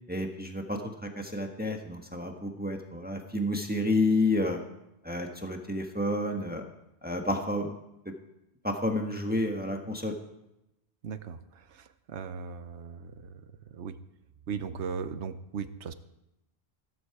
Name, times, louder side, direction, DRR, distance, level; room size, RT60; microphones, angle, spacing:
voice 1, 0.1-4.6 5.0-6.6 7.0-7.7 8.0-8.1 8.6-10.1, left 2 dB, 10° right, 3 dB, 1.4 m, -30 dB
voice 2, 11.0-13.4 13.7-14.0 14.5-15.9, right 6 dB, 90° right, 11 dB, 1.2 m, -38 dB
15.5 x 13.5 x 4.8 m, 0.89 s
omnidirectional pair, 1.1 m